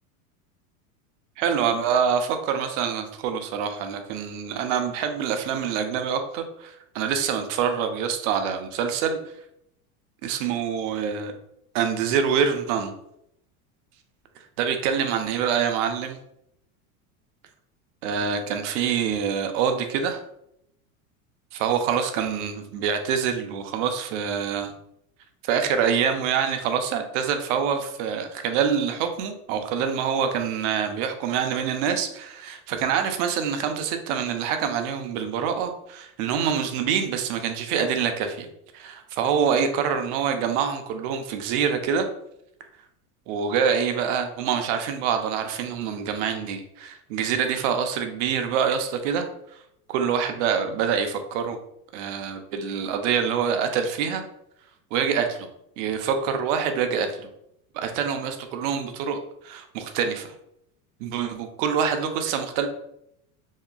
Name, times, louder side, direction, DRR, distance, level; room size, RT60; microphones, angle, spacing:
voice 1, 1.4-9.2 10.2-11.3 11.7-12.9 14.6-16.2 18.0-20.2 21.5-24.7 25.4-38.5 38.7-42.1 43.3-49.3 49.9-51.6 51.9-54.2 54.9-55.5 55.8-57.3 57.7-59.2 59.4-60.3 61.0-62.7, right 7 dB, 55° right, 6 dB, 0.5 m, -25 dB
2.8 x 2.3 x 2.2 m, 0.79 s
supercardioid pair, 130°, 44 cm